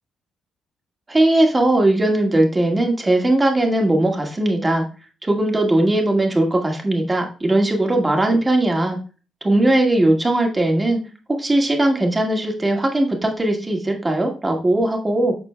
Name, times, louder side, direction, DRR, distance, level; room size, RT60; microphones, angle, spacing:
voice 1, 1.1-4.8 5.2-9.0 9.4-11.0 11.4-15.3, right 1 dB, 20° right, 2 dB, 1.9 m, -19 dB
12.5 x 4.3 x 2.3 m, 0.35 s
cardioid pair, 95°, 0 cm